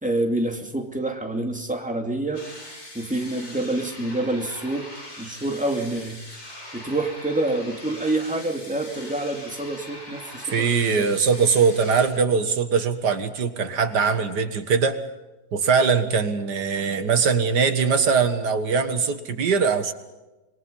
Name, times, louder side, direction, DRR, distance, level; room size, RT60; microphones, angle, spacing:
voice 1, 0.0-2.5 2.9-4.9 5.2-6.2 6.7-11.1, right 2 dB, 5° right, 3 dB, 2.6 m, -27 dB
sound 1, 2.3-12.1, left 1 dB, 65° left, 8.7 m, -42 dB
voice 2, 10.5-15.0 15.5-19.9, right 5 dB, 90° right, 9 dB, 2.2 m, -21 dB
26.0 x 23.0 x 5.5 m, 1.1 s
omnidirectional pair, 1.7 m